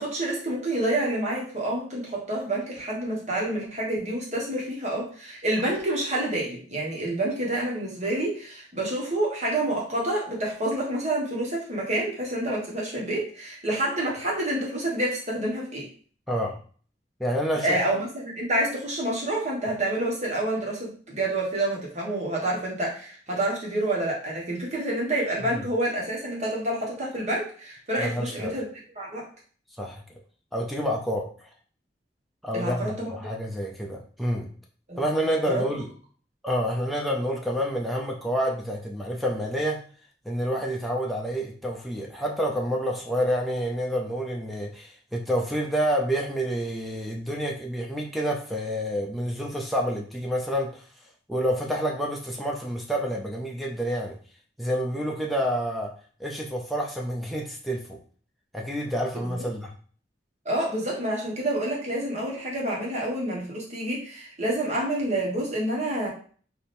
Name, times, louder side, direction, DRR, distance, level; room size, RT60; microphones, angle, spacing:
voice 1, 0.0-15.9 17.6-28.6 28.9-29.3 32.5-33.1 34.9-35.6 59.2-59.5 60.4-66.1, right 1 dB, 40° right, -3 dB, 1.4 m, -28 dB
voice 2, 16.3-16.6 17.2-17.8 25.5-25.6 28.0-28.5 29.8-30.0 30.5-31.5 32.4-34.5 35.0-35.9 36.4-39.8 40.3-50.8 51.3-54.2 54.6-55.9 56.2-58.0 58.5-59.7, equal, ahead, -1 dB, 0.5 m, -28 dB
3.4 x 2.8 x 4.3 m, 0.44 s
head